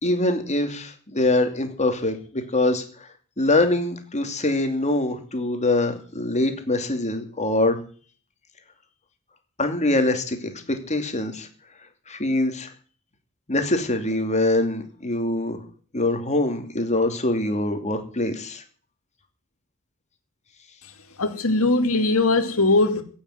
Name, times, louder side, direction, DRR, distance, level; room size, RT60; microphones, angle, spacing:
voice 1, 0.0-3.1 3.4-7.8 9.6-10.4 10.7-11.5 12.1-12.7 13.5-15.6 15.9-18.6, left 2 dB, 30° left, 2.8 m, -24 dB
voice 2, 21.2-23.0, left 2 dB, 70° left, 2.6 m, -20 dB
16.5 x 7.3 x 9.5 m
head